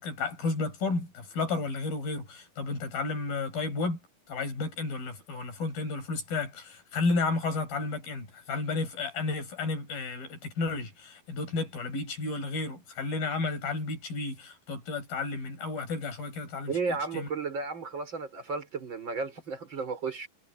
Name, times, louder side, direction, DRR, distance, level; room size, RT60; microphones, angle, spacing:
voice 1, 0.0-4.0 4.3-16.7 17.1-17.3, left 3 dB, 80° left, 7.8 m, -32 dB
voice 2, 16.7-20.3, right 4 dB, 30° right, 5.5 m, -33 dB
omnidirectional pair, 4.1 m